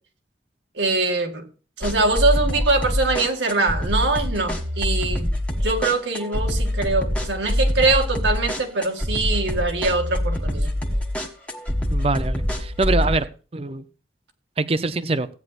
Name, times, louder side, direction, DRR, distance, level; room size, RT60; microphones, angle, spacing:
voice 1, 0.8-1.4 1.8-5.3 5.6-10.7, right 3 dB, 85° right, 3 dB, 2.0 m, -23 dB
sound 1, 1.8-13.2, equal, 5° left, 1.4 m, -25 dB
voice 2, 11.9-13.8 14.6-15.3, right 3 dB, 35° right, 13 dB, 0.6 m, -24 dB
16.0 x 9.4 x 2.5 m, 0.36 s
head